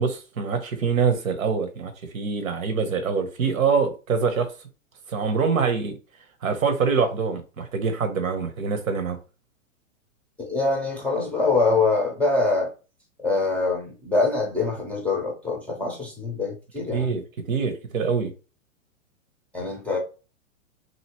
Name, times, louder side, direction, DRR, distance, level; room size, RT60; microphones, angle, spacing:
voice 1, 0.0-4.5 5.1-5.9 6.4-9.2 16.9-18.3, right 5 dB, 80° right, 1.0 m, -24 dB
voice 2, 10.4-12.7 13.2-17.2 19.5-20.0, left 3 dB, 5° left, 0.5 m, -24 dB
2.9 x 2.7 x 2.9 m
hypercardioid pair, 120°, 40 cm